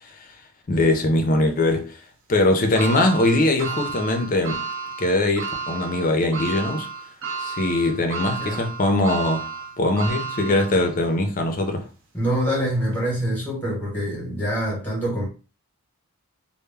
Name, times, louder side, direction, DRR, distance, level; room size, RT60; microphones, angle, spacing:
voice 1, 0.7-2.0 2.3-4.6 5.0-6.9 7.4-9.5 9.8-11.9, left 2 dB, 40° left, 0.4 m, -21 dB
sound 1, 2.8-11.1 11.6-11.7 12.9-13.0, right 4 dB, 60° right, 0.7 m, -32 dB
voice 2, 12.1-15.2, equal, 10° left, 0.9 m, -25 dB
2.1 x 2.0 x 3.3 m
head